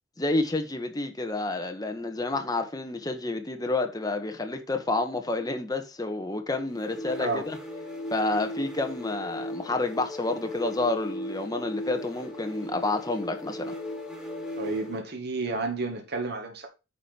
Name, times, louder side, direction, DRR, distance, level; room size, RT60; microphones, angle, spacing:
voice 1, 0.2-7.6 8.1-13.7, left 2 dB, 20° left, 1.6 m, -29 dB
sound 1, 6.7-15.1, equal, ahead, 3.7 m, -37 dB
voice 2, 14.6-16.7, right 2 dB, 60° right, 1.9 m, -31 dB
9.5 x 5.0 x 5.3 m
head